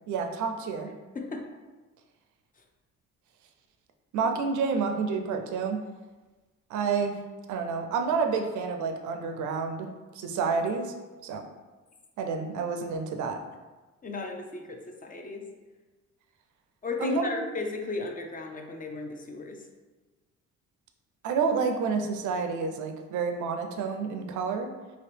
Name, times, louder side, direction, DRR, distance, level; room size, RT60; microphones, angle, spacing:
voice 1, 0.1-0.9 4.1-5.8 6.7-7.2 7.5-10.9 11.2-11.5 12.2-13.4 17.0-17.4 21.2-24.7, right 5 dB, 75° right, 5 dB, 0.5 m, -29 dB
voice 2, 1.1-1.5 14.0-15.5 16.8-19.7, left 3 dB, 30° left, 3 dB, 0.5 m, -35 dB
2.9 x 2.8 x 3.3 m, 1.2 s
cardioid pair, 90°, 30 cm